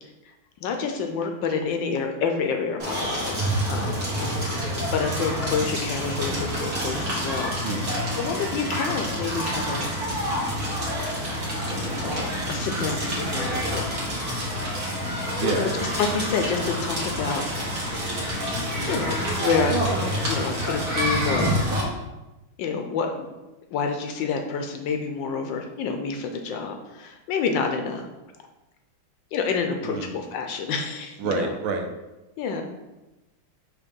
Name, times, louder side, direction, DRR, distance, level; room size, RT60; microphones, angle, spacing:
voice 1, 0.6-9.9 11.6-13.9 15.4-17.6 18.9-19.7 20.3-21.5 22.6-23.3 23.7-28.1 29.3-31.5 32.4-32.6, left 5 dB, 75° left, 4 dB, 1.2 m, -28 dB
Crackle, 2.8-21.8, equal, 50° right, 1.9 m, -27 dB
voice 2, 7.6-8.0 15.4-15.7 29.8-30.1 31.2-31.9, right 4 dB, 75° right, 5 dB, 1.4 m, -28 dB
6.2 x 2.9 x 5.2 m, 1.0 s
omnidirectional pair, 2.3 m